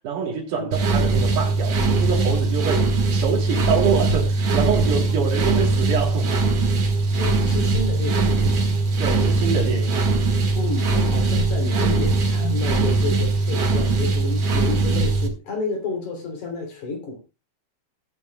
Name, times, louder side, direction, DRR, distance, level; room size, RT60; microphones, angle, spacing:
voice 1, 0.0-6.6 9.0-10.0, right 6 dB, 65° right, 4.3 m, -26 dB
sound 1, 0.7-15.3, right 3 dB, 50° right, 2.6 m, -21 dB
voice 2, 7.2-8.7 10.6-17.2, left 3 dB, 60° left, 4.6 m, -30 dB
19.0 x 9.2 x 2.3 m
omnidirectional pair, 4.0 m